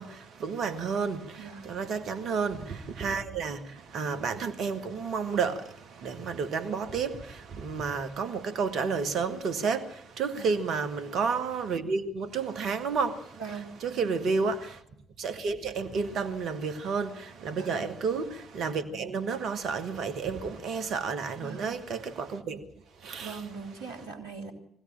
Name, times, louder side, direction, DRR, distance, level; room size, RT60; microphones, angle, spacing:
voice 1, 0.0-13.4 13.8-14.8 15.2-22.7 23.0-23.4, right 5 dB, 55° right, 2.2 m, -31 dB
voice 2, 1.4-1.7 10.3-10.6 13.4-14.3 17.5-17.9 21.4-21.8 23.2-24.5, right 5 dB, 80° right, 3.3 m, -41 dB
23.5 x 16.5 x 9.0 m
figure-of-eight pair, 45°, 0 cm